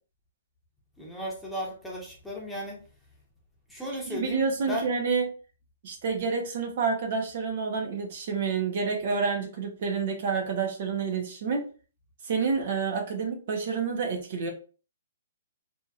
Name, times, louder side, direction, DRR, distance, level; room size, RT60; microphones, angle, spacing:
voice 1, 1.0-2.8 3.7-4.9, equal, 5° left, -3 dB, 0.8 m, -35 dB
voice 2, 4.1-5.2 5.8-11.7 12.2-14.5, right 5 dB, 55° right, 4 dB, 0.7 m, -28 dB
2.8 x 2.8 x 2.3 m, 0.37 s
hypercardioid pair, 145°, 0 cm